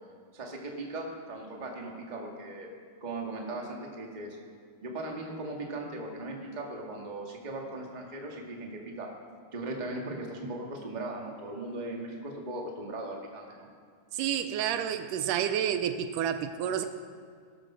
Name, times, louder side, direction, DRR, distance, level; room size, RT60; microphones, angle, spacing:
voice 1, 0.3-2.7 3.0-4.4 4.8-9.1 9.5-13.7, right 2 dB, 20° right, 0 dB, 1.4 m, -38 dB
voice 2, 14.1-16.9, right 9 dB, 80° right, 9 dB, 2.2 m, -29 dB
18.0 x 12.0 x 6.2 m, 2.1 s
omnidirectional pair, 3.8 m